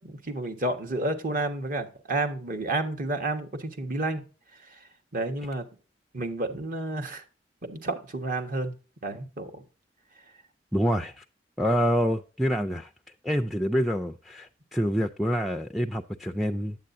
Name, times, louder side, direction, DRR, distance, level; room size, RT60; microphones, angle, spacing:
voice 1, 0.0-4.2 5.1-5.6 6.1-7.2 7.6-8.8 9.0-9.6, right 2 dB, 50° right, 1.3 m, -30 dB
voice 2, 10.7-11.2 11.6-12.9 13.2-16.8, equal, ahead, 0.4 m, -26 dB
8.7 x 8.3 x 2.6 m
head